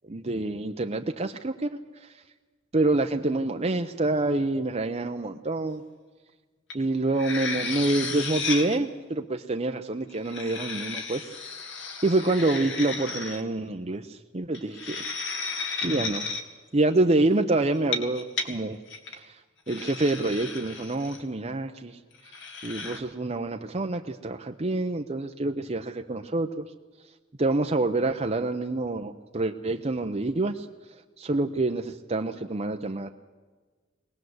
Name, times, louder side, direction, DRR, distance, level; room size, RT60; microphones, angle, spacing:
voice 1, 0.1-1.8 2.7-5.8 6.7-11.3 12.0-15.0 15.8-16.2 16.7-18.8 19.1-19.2 19.7-22.0 22.6-26.6 27.4-30.7 31.2-33.1, right 2 dB, 35° right, 5 dB, 0.8 m, -27 dB
sound 1, 6.7-6.8 7.1-8.8 10.1-13.4 14.5-16.4 17.8-18.5 18.9-19.2 19.7-21.2 22.2-23.0, left 4 dB, 65° left, 2.3 m, -34 dB
23.0 x 18.5 x 7.9 m, 1.4 s
head